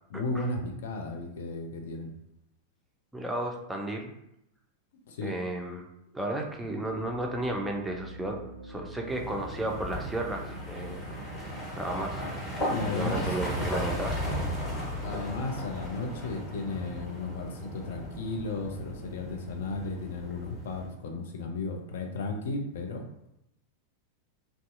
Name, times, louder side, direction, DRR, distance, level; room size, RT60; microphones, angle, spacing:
voice 1, 0.1-2.1 5.1-5.3 12.2-13.4 15.0-23.0, left 3 dB, 60° left, 3 dB, 0.4 m, -35 dB
voice 2, 3.1-4.1 5.2-5.9 6.1-11.0 11.3-12.2 12.7-14.2, right 1 dB, 5° right, 1 dB, 0.4 m, -33 dB
sound 1, 6.4-13.6, equal, 80° right, 0.4 m, -47 dB
sound 2, 9.1-20.9, equal, 20° left, 1.1 m, -36 dB
2.5 x 2.3 x 2.4 m, 0.81 s
figure-of-eight pair, 90°, 0 cm